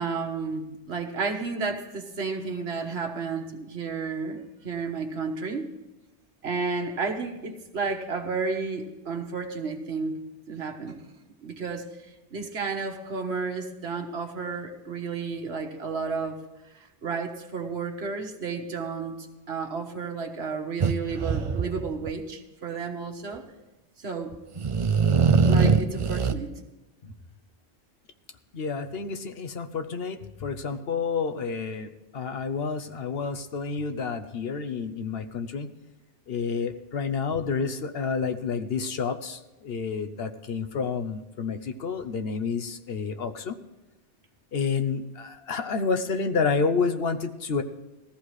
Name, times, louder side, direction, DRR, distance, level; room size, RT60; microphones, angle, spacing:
voice 1, 0.0-4.4 4.6-5.7 6.4-10.2 10.5-11.0 11.4-11.8 12.3-16.4 17.0-23.4 24.0-24.3 25.5-26.6, right 4 dB, 65° right, 3 dB, 1.5 m, -32 dB
sound 1, 20.8-22.1 24.3-26.3, right 5 dB, 45° right, 0.4 m, -22 dB
voice 2, 28.5-35.7 36.3-43.6 44.5-47.6, left 5 dB, 60° left, 7 dB, 1.0 m, -29 dB
20.0 x 14.0 x 3.2 m, 1.0 s
omnidirectional pair, 1.1 m